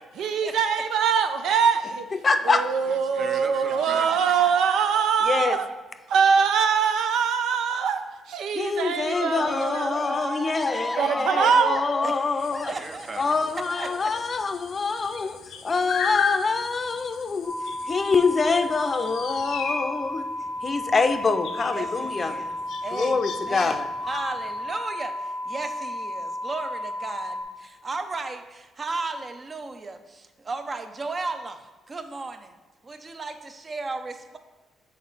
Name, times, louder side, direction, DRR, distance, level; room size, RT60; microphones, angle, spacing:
voice 1, 0.2-2.1 2.4-5.7 6.1-10.4 11.0-11.9, right 6 dB, 80° right, 8 dB, 0.5 m, -23 dB
voice 2, 2.2-2.6 5.2-5.6 8.5-12.7 13.2-15.4 15.6-17.5 17.9-20.2 20.6-22.4 22.9-23.9, left 4 dB, 35° left, 7 dB, 0.5 m, -25 dB
voice 3, 2.9-4.7 12.0-14.1 21.7-32.5 32.8-34.4, right 3 dB, 35° right, 8 dB, 0.6 m, -35 dB
sound 1, 9.1-13.1 13.7-14.2 15.2-15.6 16.0-16.1 17.4-17.5 18.3-18.5, left 1 dB, ahead, 0.9 m, -34 dB
sound 2, 12.4-24.6, left 6 dB, 85° left, 0.6 m, -36 dB
sound 3, 17.4-27.4, left 1 dB, 15° right, 1.1 m, -33 dB
6.6 x 4.2 x 4.1 m, 1.2 s
cardioid pair, 90°, 0 cm